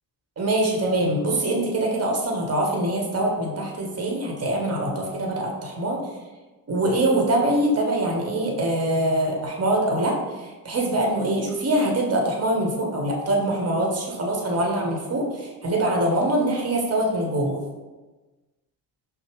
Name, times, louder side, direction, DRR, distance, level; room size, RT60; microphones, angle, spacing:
voice 1, 0.4-6.0 6.7-17.6, right 1 dB, 30° right, 0 dB, 1.2 m, -24 dB
5.4 x 2.2 x 3.2 m, 1.2 s
hypercardioid pair, 45°, 47 cm